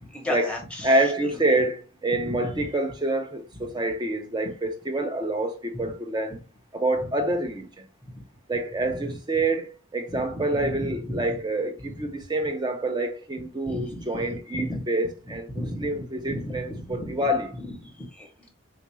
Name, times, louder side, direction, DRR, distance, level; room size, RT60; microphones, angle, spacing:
voice 1, 0.0-0.9 2.2-2.6 7.0-7.1 8.1-8.2 9.1-9.2 10.1-11.4 13.6-14.0 14.5-14.8 15.3-17.1 17.9-18.5, left 1 dB, 5° left, 0.8 m, -34 dB
voice 2, 0.8-6.4 6.7-7.7 8.5-17.5, right 2 dB, 20° right, 0.5 m, -27 dB
3.7 x 2.4 x 3.0 m
head